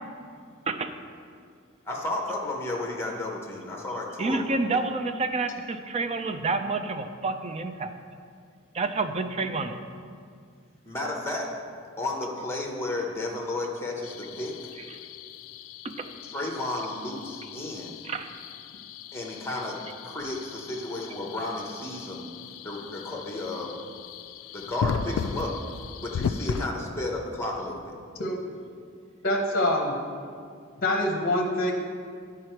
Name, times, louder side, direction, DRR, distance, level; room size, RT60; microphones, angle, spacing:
voice 1, 1.9-4.5 10.8-11.5 12.0-14.5 16.3-18.0 19.1-22.3 22.6-23.8 24.5-25.6 26.0-28.0, left 2 dB, 10° left, -1 dB, 0.9 m, -33 dB
voice 2, 4.2-7.9 8.7-9.8 15.8-16.1 18.0-18.3, right 3 dB, 30° right, 8 dB, 0.4 m, -29 dB
sound 1, 14.0-26.7, left 6 dB, 80° left, 0.3 m, -37 dB
voice 3, 29.2-30.0 30.8-31.7, left 1 dB, 45° left, 1 dB, 0.7 m, -25 dB
9.5 x 4.7 x 4.5 m, 2.2 s
head